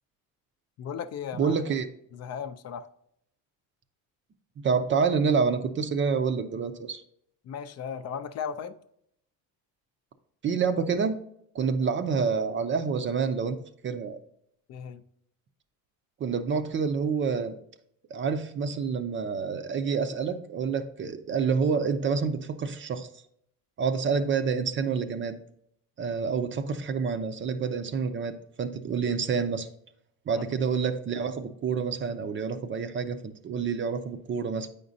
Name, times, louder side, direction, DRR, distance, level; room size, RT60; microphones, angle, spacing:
voice 1, 0.8-1.6 2.1-2.9 7.5-8.7 14.7-15.0 30.3-30.4, left 7 dB, 45° left, 10 dB, 0.5 m, -36 dB
voice 2, 1.4-1.9 4.6-7.0 10.4-11.2 11.5-13.6 13.8-14.2 16.2-17.6 18.1-23.1 23.8-25.4 26.0-29.7 30.3-34.7, right 5 dB, 35° right, 9 dB, 0.5 m, -28 dB
8.5 x 5.1 x 2.7 m, 0.71 s
cardioid pair, 130°, 36 cm